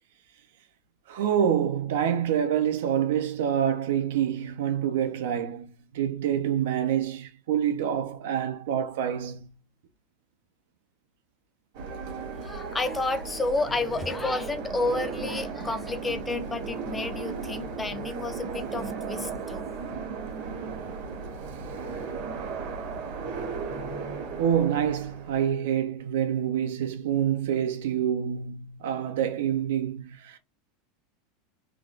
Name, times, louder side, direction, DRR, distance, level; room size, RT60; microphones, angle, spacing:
voice 1, 1.1-5.7 5.9-9.5 24.4-30.4, right 9 dB, 75° right, 0.7 m, -27 dB
sound 1, 11.7-25.5, right 5 dB, 50° right, 1.4 m, -35 dB
voice 2, 12.4-19.7, left 3 dB, 10° left, 0.4 m, -30 dB
3.6 x 2.5 x 3.3 m
supercardioid pair, 180°, 0 cm